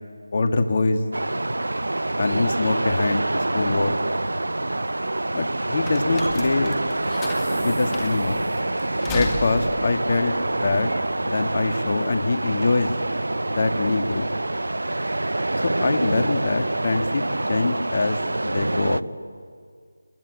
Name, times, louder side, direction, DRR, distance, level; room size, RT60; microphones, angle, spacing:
voice 1, 0.3-1.0 2.2-4.0 5.3-6.8 7.5-8.4 9.1-10.9 11.2-12.9 13.5-14.3 15.6-17.2 17.5-18.2 18.4-19.0, left 3 dB, 45° left, 7 dB, 1.9 m, -24 dB
sound 1, 1.1-19.0, right 2 dB, 80° right, 0.6 m, -26 dB
sound 2, 5.8-11.4, left 3 dB, 15° left, 2.1 m, -36 dB
28.5 x 22.0 x 8.4 m, 2.1 s
figure-of-eight pair, 165°, 0 cm